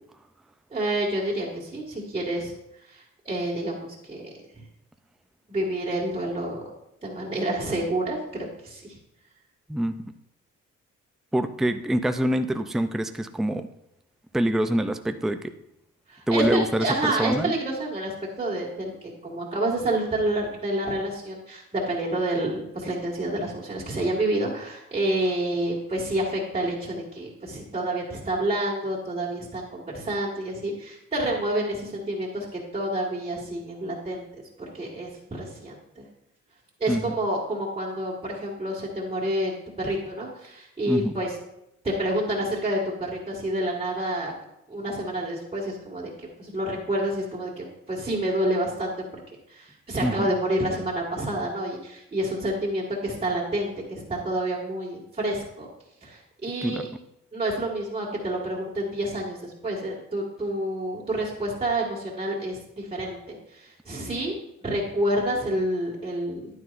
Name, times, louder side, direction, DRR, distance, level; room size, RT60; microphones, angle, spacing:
voice 1, 0.7-2.5 2.9-4.6 5.5-6.6 7.0-9.0 16.1-34.2 34.7-36.0 36.8-41.3 41.8-44.4 44.7-49.1 49.5-55.7 56.0-56.9 57.3-64.3 64.6-66.5, right 1 dB, 20° right, -5 dB, 1.9 m, -28 dB
voice 2, 11.3-13.7 14.3-15.5 16.3-17.5 36.9-37.1 40.9-41.1 50.0-50.3 56.6-56.9, right 1 dB, ahead, 8 dB, 0.4 m, -25 dB
9.9 x 9.3 x 2.6 m, 0.84 s
cardioid pair, 90°, 30 cm